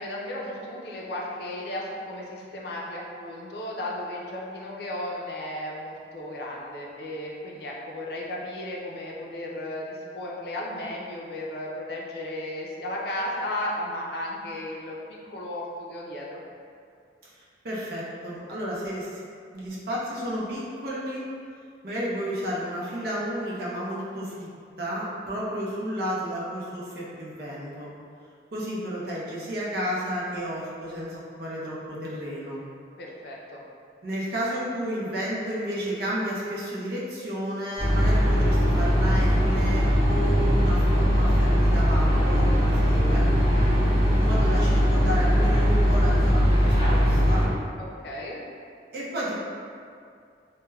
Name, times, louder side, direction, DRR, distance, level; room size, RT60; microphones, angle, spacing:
voice 1, 0.0-16.4 33.0-33.6 47.8-48.5, left 1 dB, 60° left, -3 dB, 0.4 m, -34 dB
voice 2, 17.2-19.2 19.5-21.2 21.8-24.5 24.8-27.9 28.5-32.6 34.0-43.3 44.1-47.5 48.9-49.3, equal, 55° right, -6 dB, 0.6 m, -32 dB
sound 1, 37.8-47.5, equal, 30° right, 1.2 m, -20 dB
3.3 x 2.1 x 2.2 m, 2.3 s
head